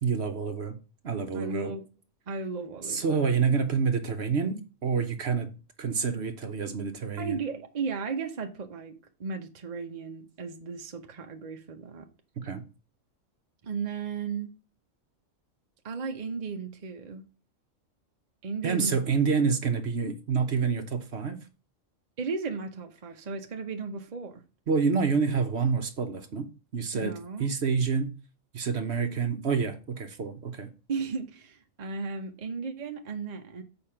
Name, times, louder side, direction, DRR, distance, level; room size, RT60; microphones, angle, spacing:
voice 1, 0.0-0.8 1.0-1.7 2.8-5.5 5.8-7.4 12.4-12.6 18.6-21.4 24.7-26.4 26.7-27.1 27.4-28.1 28.5-30.7, right 5 dB, 55° right, 1.1 m, -27 dB
voice 2, 1.3-1.9 2.3-3.2 7.2-8.9 9.2-12.1 13.6-14.5 15.8-17.2 18.4-19.0 22.2-24.4 26.9-27.5 30.9-33.6, right 5 dB, 40° right, 0.9 m, -35 dB
7.0 x 4.8 x 5.7 m
omnidirectional pair, 1.3 m